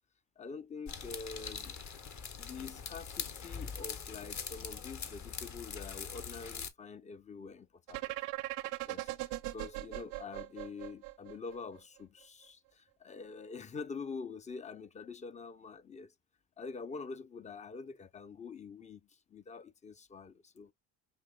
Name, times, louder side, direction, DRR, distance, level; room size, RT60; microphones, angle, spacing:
voice 1, 0.4-1.8 2.4-8.0 8.9-9.1 9.5-16.1 16.6-20.7, left 4 dB, 20° left, 0.3 m, -46 dB
sound 1, 0.9-6.7, left 6 dB, 40° left, 1.0 m, -42 dB
sound 2, 7.9-11.8, right 18 dB, 90° right, 0.6 m, -39 dB
5.5 x 2.9 x 2.3 m
hypercardioid pair, 70°, 44 cm